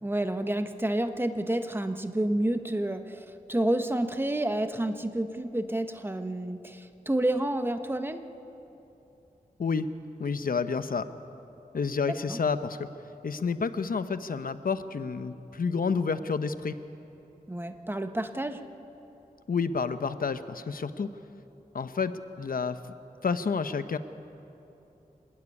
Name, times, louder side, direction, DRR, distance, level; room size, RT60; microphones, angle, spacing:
voice 1, 0.0-8.2 12.1-12.4 17.5-18.6, right 1 dB, 15° right, 8 dB, 1.1 m, -29 dB
voice 2, 10.2-11.1 11.7-12.9 13.2-16.7 19.5-21.1 21.7-22.8 23.2-24.0, left 5 dB, 70° left, 11 dB, 0.8 m, -29 dB
26.5 x 12.5 x 9.8 m, 3.0 s
wide cardioid pair, 85°, 15 cm